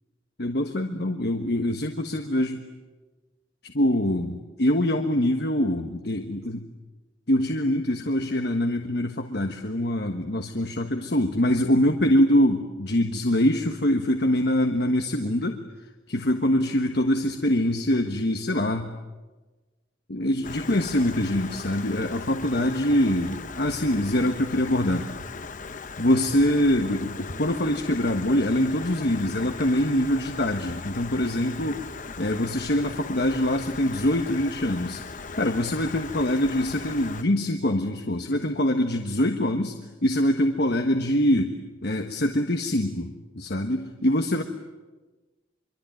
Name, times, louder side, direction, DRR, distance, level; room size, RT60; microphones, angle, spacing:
voice 1, 0.4-2.6 3.6-6.6 7.3-15.6 16.1-18.9 20.1-25.1 26.0-31.9 32.2-35.0 35.4-41.6 41.8-44.4, left 1 dB, 60° left, 5 dB, 1.5 m, -24 dB
Stream, 20.4-37.2, left 4 dB, 45° left, 0.9 m, -38 dB
26.0 x 24.0 x 9.1 m, 1.2 s
head